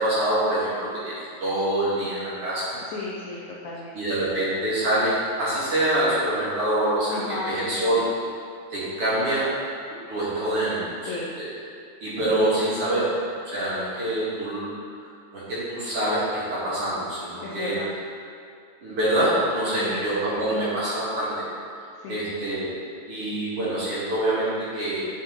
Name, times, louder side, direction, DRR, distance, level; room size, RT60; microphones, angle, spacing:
voice 1, 0.0-2.7 3.9-7.2 7.5-8.1 8.7-9.5 10.1-11.0 11.4-11.5 12.0-13.2 13.5-14.7 15.3-17.8 18.8-21.4 22.1-22.7 23.1-25.0, right 1 dB, 40° right, -10 dB, 2.5 m, -25 dB
voice 2, 2.9-4.2 7.1-7.9 11.1-11.3 17.4-17.9 19.8-20.0 22.0-22.2, left 2 dB, 85° left, -4 dB, 1.6 m, -34 dB
10.5 x 6.4 x 3.8 m, 2.3 s
omnidirectional pair, 4.5 m